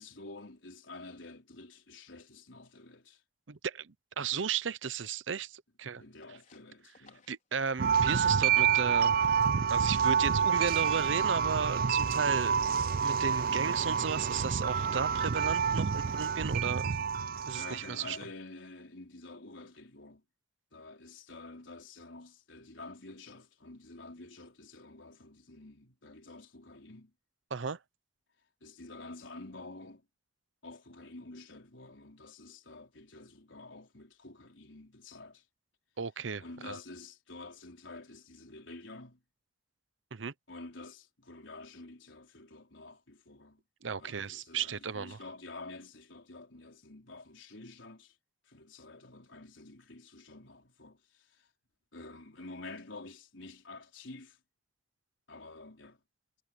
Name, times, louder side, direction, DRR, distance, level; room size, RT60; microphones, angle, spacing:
voice 1, 0.0-3.2 5.8-7.3 17.5-20.2 20.7-27.1 28.6-30.1 30.6-35.5 36.4-39.2 40.5-43.6 44.0-48.2 48.5-51.5 51.9-54.4 55.3-56.0, left 2 dB, 85° left, 4.1 m, -49 dB
voice 2, 3.5-6.0 7.3-9.1 9.7-12.5 13.0-16.9 17.5-18.2 27.5-27.8 36.0-36.8 40.1-40.3 43.8-45.2, right 6 dB, 80° right, 0.8 m, -35 dB
sound 1, 6.2-8.1 8.4-9.3 9.6-11.4 11.7-12.1 12.4-12.8 13.1-13.4 13.8-14.2 14.5-14.9 15.2-15.6, left 5 dB, 45° left, 5.2 m, -62 dB
sound 2, 7.8-17.9, right 7 dB, 50° right, 0.4 m, -28 dB
head